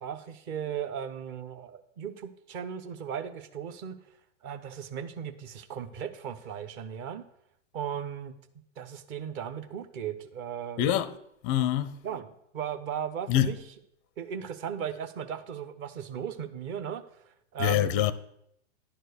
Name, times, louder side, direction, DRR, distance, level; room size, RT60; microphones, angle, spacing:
voice 1, 0.0-4.0 4.4-7.2 7.7-8.3 8.8-10.8 12.0-12.3 12.5-13.6 14.2-18.1, right 8 dB, 30° right, 0.8 m, -37 dB
voice 2, 10.8-11.2 11.4-12.0 13.3-13.5 17.6-18.1, left 11 dB, 25° left, 0.4 m, -25 dB
10.5 x 4.5 x 6.6 m
hypercardioid pair, 120°, 37 cm